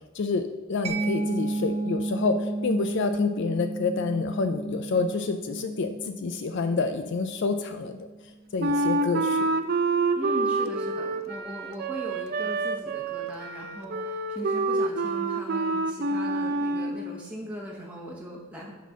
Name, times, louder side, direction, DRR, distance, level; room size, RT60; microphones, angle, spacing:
voice 1, 0.1-8.1 8.5-9.5, left 4 dB, 55° left, 8 dB, 0.4 m, -28 dB
Mallet percussion, 0.8-8.2, right 2 dB, 30° right, 0.9 m, -33 dB
Wind instrument woodwind instrument, 8.6-17.0, right 3 dB, 45° right, 0.5 m, -27 dB
voice 2, 10.1-18.7, equal, 5° right, -3 dB, 1.0 m, -39 dB
9.1 x 4.2 x 6.1 m, 1.3 s
head